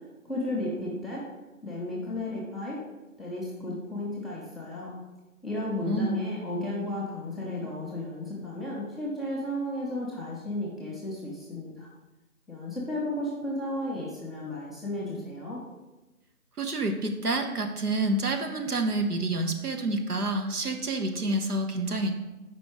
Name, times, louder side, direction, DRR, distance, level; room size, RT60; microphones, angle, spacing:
voice 1, 0.3-1.2 1.6-2.8 3.2-5.0 5.4-11.9 12.5-15.6, left 1 dB, ahead, -7 dB, 0.7 m, -33 dB
voice 2, 5.8-6.2 16.6-22.1, right 2 dB, 90° right, 4 dB, 1.1 m, -28 dB
5.3 x 5.0 x 4.8 m, 1.1 s
figure-of-eight pair, 175°, 44 cm